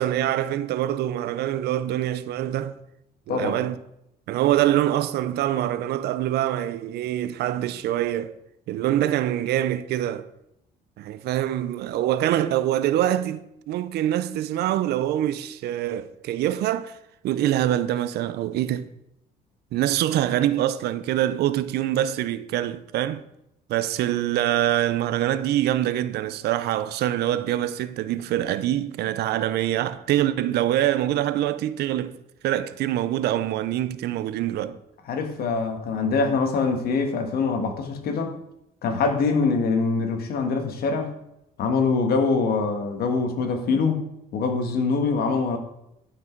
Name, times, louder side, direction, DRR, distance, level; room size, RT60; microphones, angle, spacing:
voice 1, 0.0-2.7 3.3-3.8 4.3-8.3 8.7-10.3 11.0-13.4 13.7-17.0 17.2-18.9 19.7-23.2 23.7-32.2 32.4-34.8, right 12 dB, 75° right, 0.7 m, -24 dB
voice 2, 35.1-38.3 38.8-41.1 41.6-44.0 44.3-45.6, left 4 dB, 65° left, 1.8 m, -24 dB
11.5 x 6.2 x 4.6 m
cardioid pair, 110°, 17 cm